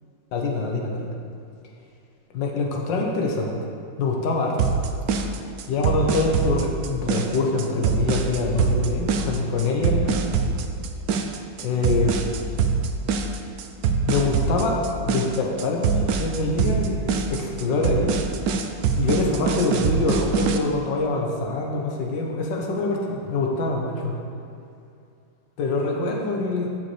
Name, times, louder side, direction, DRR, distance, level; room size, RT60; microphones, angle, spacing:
voice 1, 0.3-1.1 2.3-3.5 4.0-4.6 5.7-10.2 11.6-12.3 13.9-18.2 19.0-24.1 25.6-26.7, left 3 dB, 65° left, 0 dB, 1.8 m, -25 dB
sound 1, 4.6-20.6, right 5 dB, 75° right, 0.8 m, -24 dB
13.5 x 7.0 x 3.4 m, 2.5 s
omnidirectional pair, 2.2 m